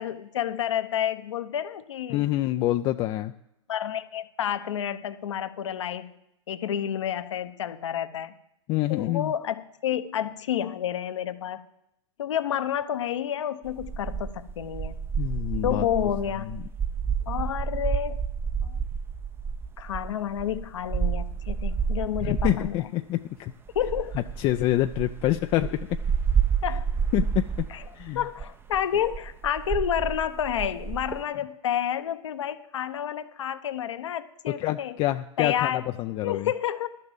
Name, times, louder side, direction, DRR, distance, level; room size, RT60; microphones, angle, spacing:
voice 1, 0.0-2.2 3.7-6.1 6.5-8.3 8.9-11.6 12.2-14.9 15.6-16.5 17.3-18.2 18.6-18.8 19.8-22.8 23.7-24.2 26.6-26.8 27.7-27.8 28.1-34.9 35.4-35.8 36.2-36.9, left 10 dB, 70° left, 11 dB, 1.0 m, -29 dB
voice 2, 2.1-3.3 8.7-9.3 15.2-15.9 16.5-16.6 22.2-23.5 24.4-26.0 27.1-27.7 27.9-28.2 34.5-36.5, left 15 dB, 30° left, 8 dB, 0.5 m, -26 dB
sound 1, 13.7-22.8 23.7-31.2, right 6 dB, 15° right, 0.6 m, -30 dB
11.5 x 6.7 x 7.4 m, 0.82 s
hypercardioid pair, 110°, 16 cm